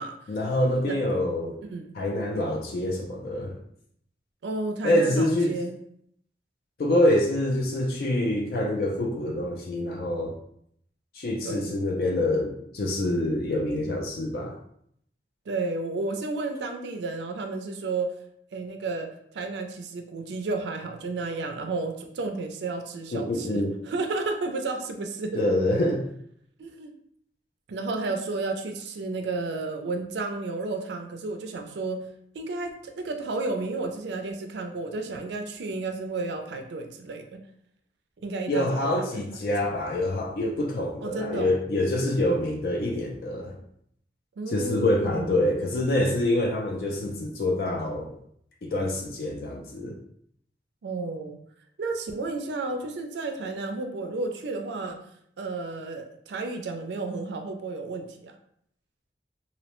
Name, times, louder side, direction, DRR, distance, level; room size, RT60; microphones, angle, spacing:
voice 1, 0.3-1.6 1.9-3.6 4.8-5.5 6.8-10.4 11.1-14.5 23.1-23.7 25.3-26.1 38.5-43.6 44.5-48.1 48.6-49.9, left 1 dB, 55° left, 1 dB, 0.3 m, -26 dB
voice 2, 4.4-5.7 11.4-11.7 15.5-18.2 18.5-25.4 26.6-26.9 27.7-32.1 32.3-37.4 38.2-39.2 41.0-41.5 44.4-45.4 50.8-51.4 51.8-55.0 55.4-58.3, right 3 dB, 85° right, 5 dB, 0.4 m, -32 dB
2.6 x 2.0 x 2.9 m, 0.69 s
head